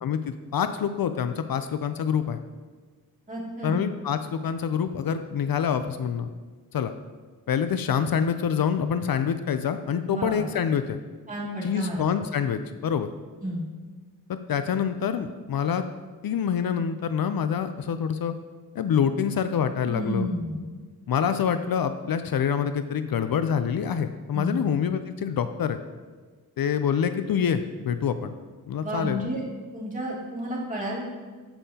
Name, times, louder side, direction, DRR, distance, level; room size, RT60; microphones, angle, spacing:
voice 1, 0.0-2.4 3.6-6.3 6.7-6.9 7.5-11.0 11.6-13.1 14.5-15.8 16.2-18.3 18.7-20.3 21.1-25.8 26.6-28.3 28.6-29.2, left 7 dB, 70° left, 10 dB, 0.5 m, -26 dB
voice 2, 3.3-3.8 10.1-10.5 11.3-12.1 13.4-13.7 19.8-20.6 24.3-24.6 28.8-29.4 29.7-31.0, equal, 20° right, -5 dB, 2.5 m, -31 dB
14.0 x 5.5 x 2.8 m, 1.4 s
wide cardioid pair, 90°, 37 cm